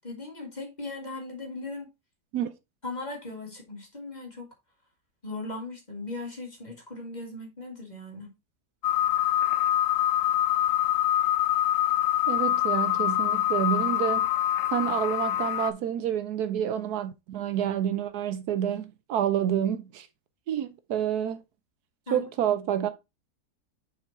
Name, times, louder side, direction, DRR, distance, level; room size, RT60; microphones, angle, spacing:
voice 1, 0.0-1.9 2.8-4.5 5.2-8.3 22.1-22.5, left 2 dB, 25° left, 2.1 m, -38 dB
sound 1, 8.8-15.7, left 12 dB, 70° left, 0.6 m, -25 dB
voice 2, 12.3-14.3 14.7-20.1 20.5-21.4 22.1-22.9, right 10 dB, 75° right, 1.2 m, -28 dB
6.6 x 4.6 x 4.0 m
omnidirectional pair, 1.7 m